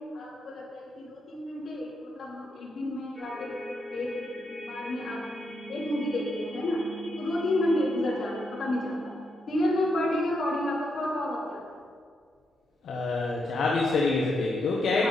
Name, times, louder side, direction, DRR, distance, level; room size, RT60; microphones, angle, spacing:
voice 1, 0.1-3.6 3.9-4.1 4.7-5.2 5.7-6.8 7.2-9.0 9.5-11.6 14.9-15.1, left 1 dB, 60° left, -5 dB, 3.1 m, -30 dB
sound 1, 3.1-10.4, right 1 dB, ahead, 2.7 m, -42 dB
voice 2, 12.8-15.1, left 3 dB, 80° left, -2 dB, 1.1 m, -26 dB
10.5 x 9.2 x 4.1 m, 2.1 s
cardioid pair, 95°, 0 cm